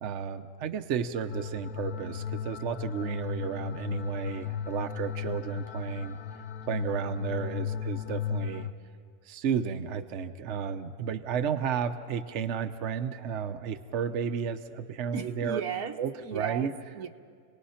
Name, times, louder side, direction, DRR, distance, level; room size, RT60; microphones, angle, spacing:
voice 1, 0.0-6.2 6.6-8.7 9.3-15.6 16.0-16.7, right 7 dB, 55° right, 7 dB, 1.1 m, -32 dB
sound 1, 1.3-8.7, left 9 dB, 85° left, 1.3 m, -36 dB
voice 2, 15.1-17.1, right 7 dB, 85° right, 5 dB, 1.5 m, -36 dB
29.0 x 19.0 x 5.7 m, 2.1 s
omnidirectional pair, 1.5 m